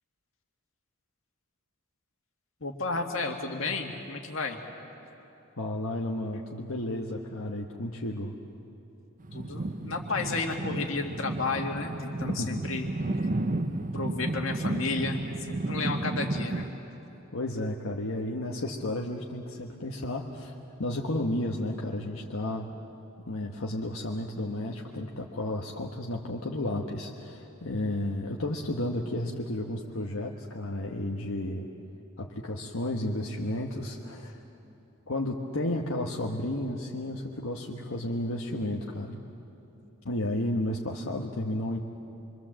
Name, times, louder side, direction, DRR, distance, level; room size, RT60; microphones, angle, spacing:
voice 1, 2.6-4.6 9.3-12.9 13.9-16.7, left 3 dB, 70° left, 3 dB, 2.2 m, -32 dB
voice 2, 5.6-8.3 12.4-12.6 17.3-20.5 20.8-22.7 23.2-31.7 32.2-34.4 35.1-39.2 40.0-41.8, left 1 dB, 85° left, -1 dB, 1.3 m, -32 dB
sound 1, 9.2-16.7, right 2 dB, 40° right, 0.7 m, -32 dB
26.0 x 24.0 x 7.6 m, 3.0 s
head